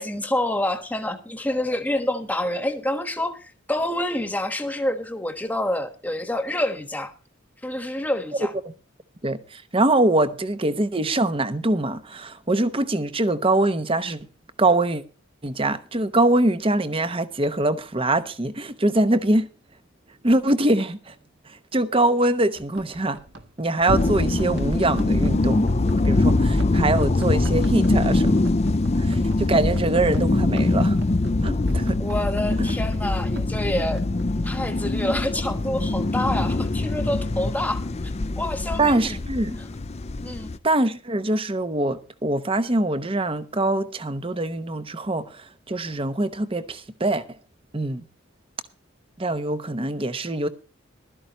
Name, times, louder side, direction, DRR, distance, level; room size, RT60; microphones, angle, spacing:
voice 1, 0.0-7.1 7.6-8.5 32.0-34.0 34.4-37.9 38.4-39.2 40.2-40.5, left 1 dB, 10° left, 1.3 m, -27 dB
voice 2, 9.2-14.3 14.6-15.0 15.4-19.5 20.2-21.1 21.5-23.2 23.6-25.7 26.0-28.4 28.9-31.0 31.4-32.0 32.6-32.7 38.8-39.6 40.6-47.2 47.7-48.0 49.2-50.5, right 2 dB, 25° right, 0.9 m, -23 dB
Run, 22.5-34.2, right 1 dB, 55° right, 1.6 m, -44 dB
sound 1, 23.9-40.6, left 2 dB, 30° left, 0.5 m, -23 dB
16.0 x 12.5 x 3.0 m
head